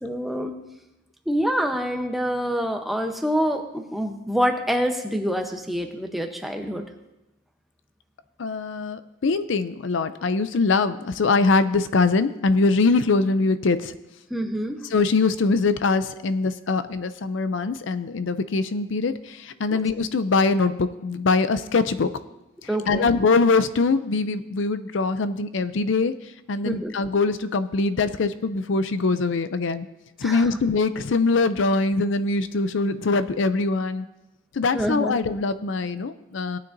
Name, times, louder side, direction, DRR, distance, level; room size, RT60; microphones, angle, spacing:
voice 1, 0.0-0.6 1.3-6.8 14.3-14.8 19.7-19.8 22.7-23.1 26.6-26.9 30.2-30.4 34.7-35.2, equal, ahead, 3 dB, 0.8 m, -26 dB
voice 2, 8.4-13.9 14.9-22.1 22.9-29.9 30.2-34.1 34.5-36.6, left 3 dB, 70° left, 12 dB, 0.5 m, -23 dB
18.5 x 9.5 x 2.6 m, 0.95 s
head